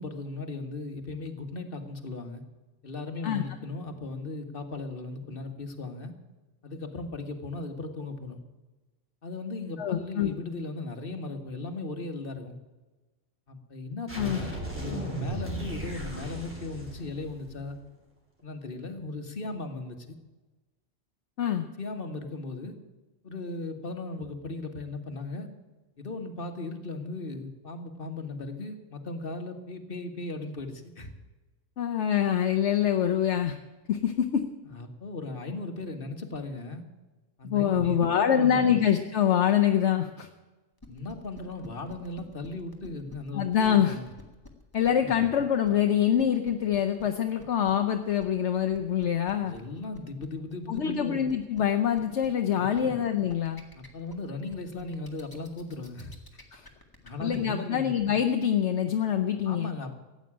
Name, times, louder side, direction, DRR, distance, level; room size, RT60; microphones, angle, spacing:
voice 1, 0.0-2.4 2.8-6.1 6.6-8.4 9.2-12.6 13.5-17.8 18.4-20.1 21.8-22.7 23.2-25.5 26.0-31.1 34.6-36.8 37.4-38.8 40.9-44.1 45.0-45.2 49.4-51.3 52.5-52.9 53.7-56.1 57.0-57.9 59.4-59.9, left 2 dB, 45° left, 5 dB, 1.8 m, -37 dB
voice 2, 9.8-10.3 14.2-14.4 21.4-21.7 31.8-33.6 33.9-34.4 37.4-40.3 43.3-44.0 44.7-49.5 50.7-53.6 56.5-56.7 57.2-59.7, left 9 dB, 65° left, 6 dB, 1.2 m, -25 dB
sound 1, 14.1-17.8, right 1 dB, 10° right, 3.8 m, -36 dB
sound 2, 40.8-57.4, left 2 dB, 15° left, 1.9 m, -51 dB
14.5 x 9.0 x 8.7 m, 1.2 s
omnidirectional pair, 1.3 m